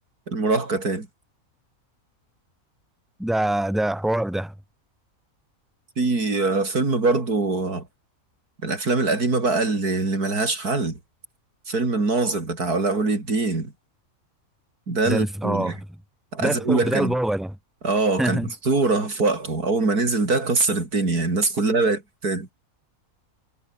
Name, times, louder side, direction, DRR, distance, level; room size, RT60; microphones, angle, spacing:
voice 1, 0.3-1.1 6.0-7.9 8.6-11.0 11.7-13.7 14.9-15.7 16.3-17.1 17.8-22.5, right 3 dB, 85° right, 4.8 m, -23 dB
voice 2, 3.2-4.5 15.0-15.8 16.4-17.5 18.2-18.5, right 1 dB, ahead, 3.1 m, -24 dB
omnidirectional pair, 1.6 m